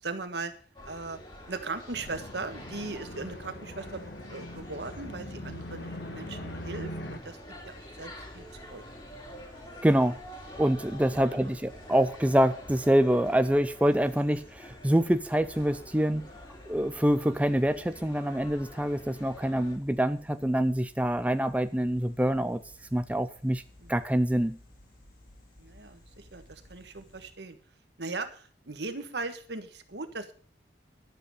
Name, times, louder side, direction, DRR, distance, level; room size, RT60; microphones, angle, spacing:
voice 1, 0.0-0.5 0.8-1.2 1.5-7.4 7.6-8.8 11.1-11.5 23.8-24.0 25.6-27.6 28.0-30.3, right 3 dB, 80° right, 8 dB, 1.5 m, -39 dB
sound 1, 0.8-19.8, left 1 dB, 25° left, 2.8 m, -47 dB
sound 2, 1.9-7.2, left 1 dB, 75° left, 1.5 m, -41 dB
sound 3, 7.5-27.3, left 1 dB, 50° left, 3.5 m, -56 dB
voice 2, 9.8-10.2 10.6-16.2 16.7-22.6 22.9-23.6 23.9-24.6, equal, 10° right, 11 dB, 0.4 m, -25 dB
11.0 x 7.9 x 6.6 m, 0.42 s
head